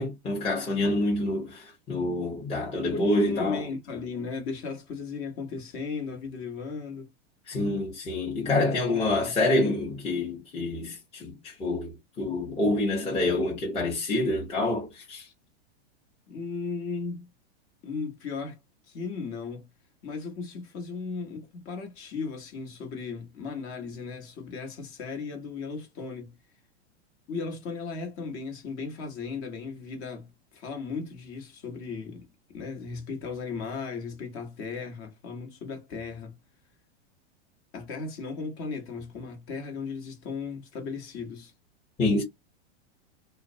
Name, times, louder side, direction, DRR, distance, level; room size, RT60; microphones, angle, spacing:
voice 1, 0.0-3.6 7.5-15.3 42.0-42.2, left 2 dB, 15° left, 0.8 m, -27 dB
voice 2, 2.9-7.1 8.4-8.6 8.9-9.3 16.3-17.3 17.8-18.6 18.8-19.7 20.0-26.4 27.3-32.3 32.5-36.4 37.7-41.5, left 4 dB, 40° left, 1.0 m, -36 dB
2.3 x 2.0 x 2.5 m
hypercardioid pair, 120°, 34 cm